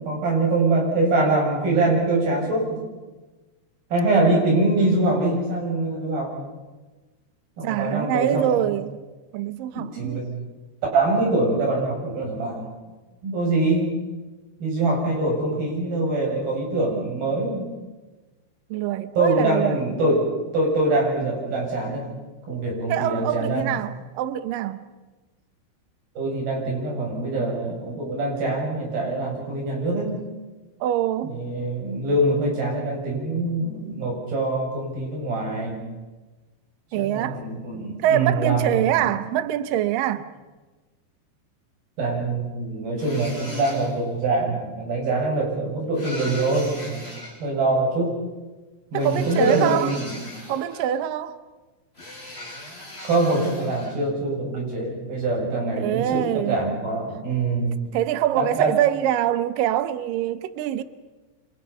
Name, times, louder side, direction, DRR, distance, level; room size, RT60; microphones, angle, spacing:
voice 1, 0.0-2.9 3.9-6.5 7.6-8.6 9.7-10.2 10.9-12.7 13.2-13.9 14.6-17.7 19.2-22.1 22.5-23.7 26.2-30.2 31.2-35.8 37.0-39.0 42.0-47.0 47.4-48.2 48.9-50.2 53.0-57.7 58.4-58.7, right 2 dB, 50° right, 9.1 m, -24 dB
voice 2, 7.6-9.0 9.3-10.3 18.7-20.0 22.9-24.8 30.8-31.3 36.9-37.4 38.0-40.3 49.0-50.0 50.5-51.4 55.8-56.6 57.9-60.8, right 11 dB, 90° right, 1.9 m, -24 dB
sound 1, 43.0-44.1 45.9-47.3 48.9-51.0 52.0-54.0, left 1 dB, 10° left, 6.6 m, -39 dB
29.5 x 26.0 x 5.7 m
omnidirectional pair, 5.5 m